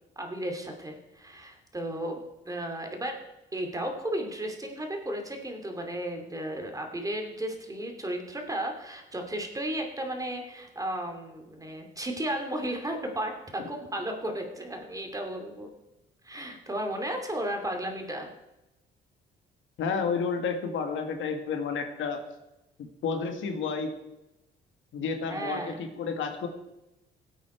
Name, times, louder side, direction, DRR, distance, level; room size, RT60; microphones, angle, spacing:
voice 1, 0.2-3.2 3.5-15.7 16.2-18.3 25.3-25.8, right 1 dB, 15° right, 3 dB, 2.6 m, -34 dB
voice 2, 19.8-22.2 22.8-23.9 24.9-26.5, left 5 dB, 75° left, 6 dB, 1.8 m, -31 dB
16.0 x 8.4 x 4.5 m, 0.94 s
cardioid pair, 90°, 20 cm